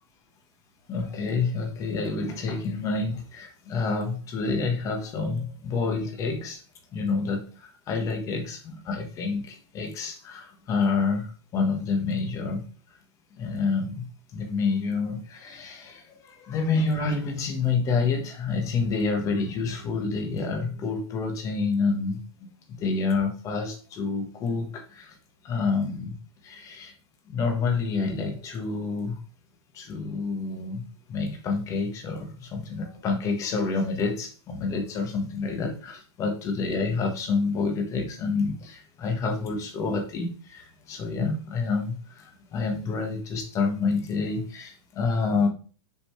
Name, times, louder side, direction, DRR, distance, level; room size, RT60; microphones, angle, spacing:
voice 1, 0.9-6.6 6.9-12.6 13.4-14.1 14.3-22.2 22.8-25.1 25.4-26.2 26.4-26.9 27.3-29.2 29.7-30.8 31.1-45.5, left 4 dB, 20° left, 4 dB, 1.4 m, -28 dB
6.9 x 5.2 x 3.3 m, 0.39 s
supercardioid pair, 165°, 15 cm